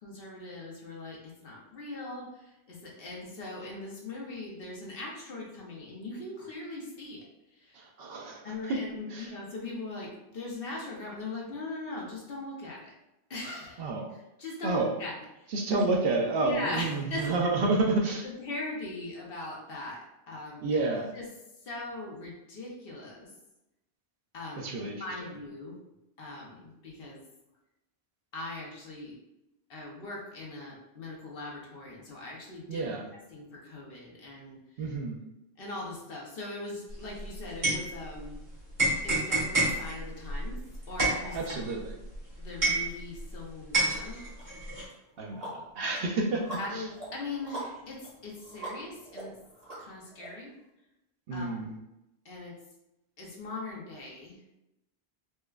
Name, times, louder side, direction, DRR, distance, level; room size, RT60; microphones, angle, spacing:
voice 1, 0.0-2.3 2.7-7.2 7.6-7.8 8.4-12.9 13.3-13.8 14.4-15.5 15.7-15.9 16.4-17.3 18.2-20.0 20.3-20.6 21.1-21.2 21.7-23.3 24.3-25.8 26.2-27.2 28.3-29.1 29.7-32.8 33.3-34.6 35.6-38.4 39.0-40.6 40.9-41.4 41.6-41.7 42.4-44.2 46.6-49.3 49.8-50.5 51.3-51.7 52.2-52.6 53.2-54.4, left 2 dB, 60° left, -3 dB, 1.0 m, -40 dB
voice 2, 7.7-8.8 9.1-9.3 13.8-14.1 14.6-14.9 15.5-18.3 20.6-21.1 24.6-25.3 32.7-33.1 34.8-35.2 41.3-42.0 45.2-46.9 51.3-51.7, right 3 dB, 65° right, 1 dB, 0.7 m, -30 dB
sound 1, 36.9-38.4 38.8-43.4 43.7-44.8, right 2 dB, 80° right, 1.8 m, -29 dB
sound 2, 44.4-44.5 44.9-50.3, right 1 dB, 35° right, 1.5 m, -44 dB
4.3 x 2.2 x 2.3 m, 0.90 s
omnidirectional pair, 1.1 m